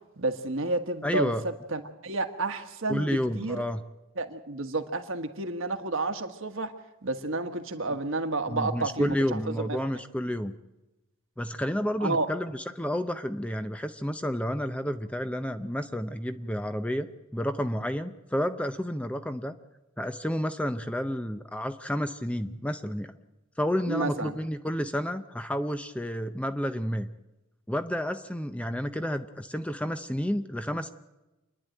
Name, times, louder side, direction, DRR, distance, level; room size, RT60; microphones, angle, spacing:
voice 1, 0.2-3.6 4.2-6.7 7.0-10.0 12.0-12.3 23.9-24.4, right 2 dB, 65° right, 1.5 m, -31 dB
voice 2, 1.0-1.4 2.9-3.8 8.5-10.5 11.4-17.1 17.3-19.5 20.0-23.1 23.6-27.1 27.7-30.9, equal, 5° left, 0.6 m, -30 dB
27.5 x 10.5 x 9.1 m
head